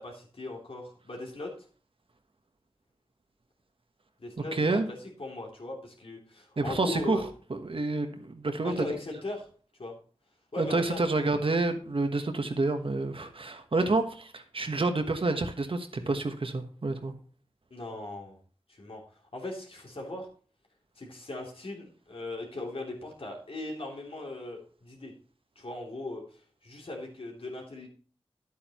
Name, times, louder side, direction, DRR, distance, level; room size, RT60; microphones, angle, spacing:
voice 1, 0.0-1.5 4.2-7.2 8.6-9.4 9.8-9.9 10.5-11.3 13.8-13.9 17.7-18.4 18.8-19.0 19.3-20.3 21.0-25.1 25.6-26.2 26.6-27.9, left 2 dB, 70° left, -1 dB, 2.9 m, -38 dB
voice 2, 4.5-4.9 6.6-7.2 7.6-8.9 10.5-14.0 14.3-17.1, right 3 dB, 65° right, 6 dB, 1.3 m, -28 dB
10.0 x 8.6 x 3.0 m, 0.42 s
wide cardioid pair, 50°, 10 cm